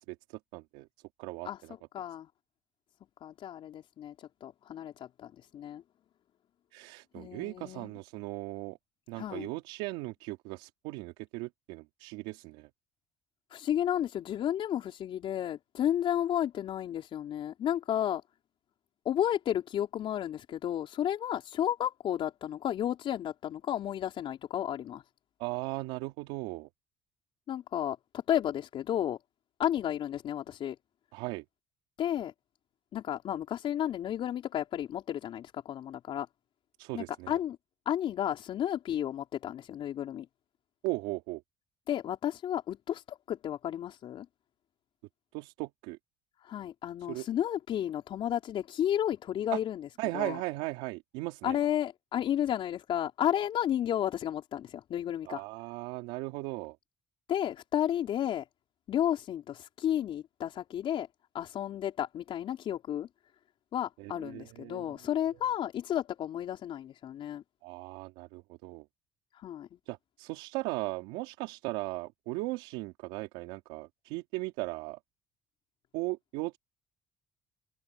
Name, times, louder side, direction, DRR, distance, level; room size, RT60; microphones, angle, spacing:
voice 1, 0.5-0.9 1.2-1.5 6.7-8.8 9.1-12.7 25.4-26.7 31.1-31.4 36.8-37.3 40.8-41.4 45.3-46.0 47.1-47.2 49.5-49.6 50.0-51.6 55.3-56.8 64.0-64.9 67.6-68.8 69.8-75.0 75.9-76.6, right 22 dB, 85° right, 3.0 m, -37 dB
voice 2, 1.9-2.3 3.2-5.8 7.1-7.9 9.2-9.5 13.5-18.2 19.0-25.0 27.5-29.2 29.6-30.8 32.0-32.3 32.9-36.3 36.9-37.6 37.8-40.3 41.9-44.3 46.4-49.9 50.1-50.4 51.4-55.4 57.3-58.4 58.9-61.1 61.3-63.1 63.7-67.4 69.3-69.7, left 10 dB, 60° left, 4.6 m, -32 dB
hypercardioid pair, 60°, 10 cm